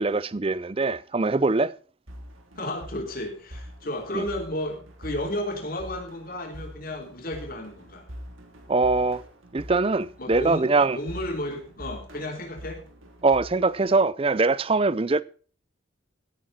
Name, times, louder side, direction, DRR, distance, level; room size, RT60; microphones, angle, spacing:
voice 1, 0.0-1.7 4.1-4.2 8.7-9.2 9.5-11.0 13.2-15.2, right 3 dB, 30° right, 0.5 m, -22 dB
sound 1, 2.1-14.1, equal, 90° right, 3.1 m, -44 dB
voice 2, 2.6-8.1 10.2-10.7 10.9-12.8, left 1 dB, 45° left, 3.6 m, -33 dB
17.0 x 9.1 x 4.2 m
head